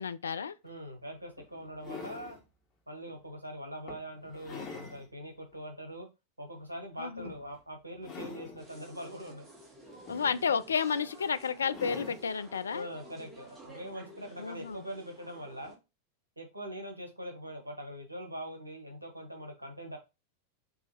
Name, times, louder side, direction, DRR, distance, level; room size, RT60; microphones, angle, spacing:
voice 1, 0.0-0.5 7.0-7.3 10.1-12.9 14.4-14.8, left 6 dB, 70° left, 0.3 m, -31 dB
sound 1, 0.6-0.7 1.4-2.4 3.1-3.2 3.9-5.0 5.5-5.6 7.2-7.6 7.9-8.7 9.8-10.7 11.7-12.3 13.7-13.8, left 4 dB, 30° left, 1.5 m, -45 dB
voice 2, 0.6-2.4 2.9-6.1 6.4-9.5 12.7-15.8 16.4-20.0, equal, 85° right, 1.1 m, -42 dB
sound 2, 8.6-15.7, right 1 dB, 20° right, 1.6 m, -52 dB
5.4 x 2.8 x 3.0 m
figure-of-eight pair, 90°, 0 cm